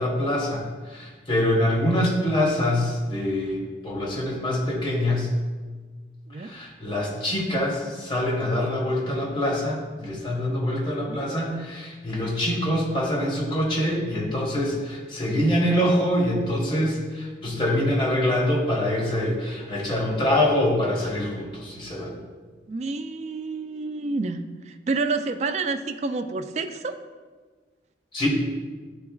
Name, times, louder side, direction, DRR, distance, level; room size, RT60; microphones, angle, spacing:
voice 1, 0.0-5.3 6.4-22.1 28.1-28.3, left 1 dB, 30° left, -3 dB, 1.3 m, -25 dB
voice 2, 22.7-27.0, right 3 dB, 40° right, 7 dB, 0.3 m, -29 dB
11.0 x 3.9 x 2.4 m, 1.4 s
head